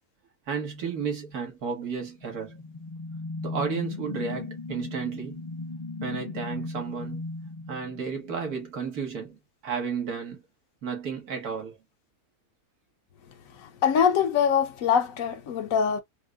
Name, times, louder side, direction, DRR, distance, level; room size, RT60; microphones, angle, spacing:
voice 1, 0.5-2.6 3.4-5.4 6.0-7.3 7.7-10.4 10.8-11.8, right 6 dB, 90° right, 1.8 m, -33 dB
sound 1, 2.1-8.6, left 3 dB, 40° left, 0.5 m, -37 dB
voice 2, 13.8-16.0, left 7 dB, 70° left, 1.1 m, -23 dB
4.5 x 2.1 x 2.3 m
omnidirectional pair, 1.6 m